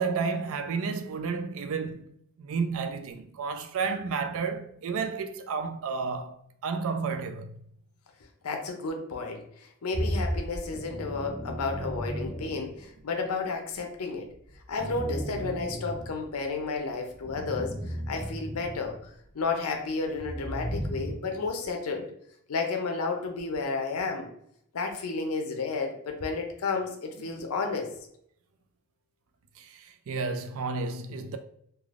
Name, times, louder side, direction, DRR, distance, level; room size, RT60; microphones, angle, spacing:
voice 1, 0.0-2.1 2.4-7.5 27.3-27.4 29.6-31.4, right 5 dB, 65° right, 0.4 m, -31 dB
voice 2, 8.4-14.3 14.7-22.1 22.5-24.3 24.7-27.9, left 4 dB, 75° left, 0.5 m, -32 dB
sound 1, 9.9-13.0 14.3-16.6 17.1-19.1 20.0-21.1, equal, 45° right, 1.4 m, -35 dB
3.3 x 2.3 x 2.4 m
head